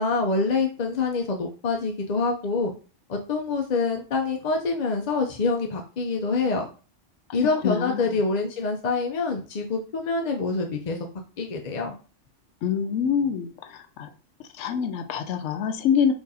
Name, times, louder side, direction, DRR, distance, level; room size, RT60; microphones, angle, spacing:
voice 1, 0.0-2.7 3.1-6.7 7.3-11.0 11.4-12.0, left 4 dB, 50° left, 3 dB, 0.5 m, -26 dB
voice 2, 7.6-8.2 12.6-14.1 14.5-16.1, left 7 dB, 80° left, 5 dB, 0.9 m, -26 dB
4.6 x 2.5 x 4.0 m, 0.36 s
omnidirectional pair, 1.3 m